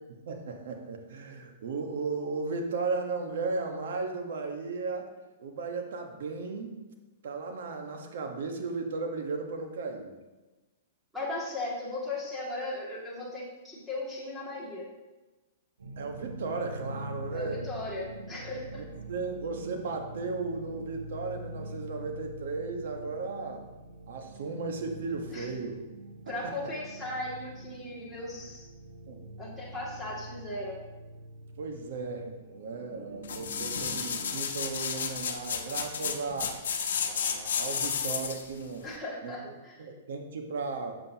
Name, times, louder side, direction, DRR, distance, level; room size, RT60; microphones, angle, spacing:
voice 1, 0.3-5.1 5.4-6.8 7.2-10.1 16.0-17.6 18.8-23.6 24.1-25.8 26.4-26.5 29.1-29.2 31.6-36.6 37.0-38.9 39.2-39.5 39.8-41.0, right 4 dB, 70° right, 3 dB, 1.3 m, -35 dB
voice 2, 11.1-14.9 17.3-18.9 25.3-25.5 26.3-28.7 29.4-30.8 38.8-39.9, left 2 dB, ahead, -7 dB, 2.3 m, -37 dB
sound 1, 15.8-34.4, right 1 dB, 90° right, 1.2 m, -44 dB
sound 2, 33.2-38.5 39.0-39.1, left 7 dB, 80° left, 0.9 m, -32 dB
7.7 x 7.4 x 2.9 m, 1.1 s
hypercardioid pair, 145°, 0 cm